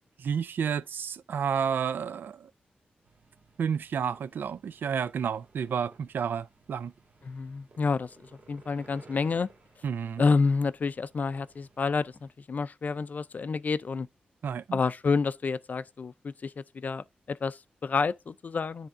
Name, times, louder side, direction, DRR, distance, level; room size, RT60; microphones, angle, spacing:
voice 1, 0.2-2.5 3.6-6.9 9.8-10.2 14.4-14.8, right 7 dB, 80° right, 0.4 m, -31 dB
sound 1, 3.0-12.3, right 3 dB, 50° right, 1.3 m, -59 dB
voice 2, 7.2-9.5 10.2-14.1 14.7-18.9, left 4 dB, 55° left, 0.4 m, -29 dB
9.8 x 3.4 x 3.6 m
cardioid pair, 60°, 3 cm